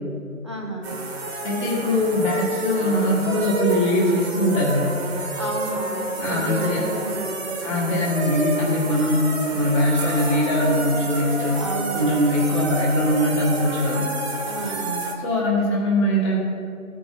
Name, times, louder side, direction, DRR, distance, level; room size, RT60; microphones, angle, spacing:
voice 1, 0.4-1.0 5.3-7.7 11.5-12.5 14.4-15.2, right 1 dB, 20° right, 0 dB, 0.4 m, -32 dB
sound 1, 0.8-15.1, right 3 dB, 45° right, 1.3 m, -29 dB
voice 2, 1.4-5.0 6.2-6.8 7.6-11.6 11.9-14.1 15.2-16.4, left 1 dB, 20° left, -4 dB, 1.5 m, -21 dB
14.5 x 5.1 x 3.6 m, 2.6 s
hypercardioid pair, 155°, 43 cm